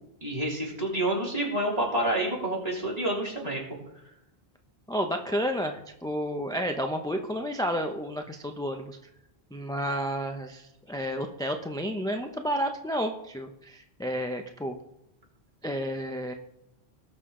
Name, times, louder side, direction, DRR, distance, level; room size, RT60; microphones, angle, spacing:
voice 1, 0.2-3.6, right 1 dB, 35° right, -4 dB, 3.6 m, -28 dB
voice 2, 4.9-9.0 9.5-14.7 15.6-16.3, equal, 5° left, 4 dB, 0.6 m, -31 dB
19.0 x 6.6 x 3.8 m, 0.88 s
omnidirectional pair, 1.1 m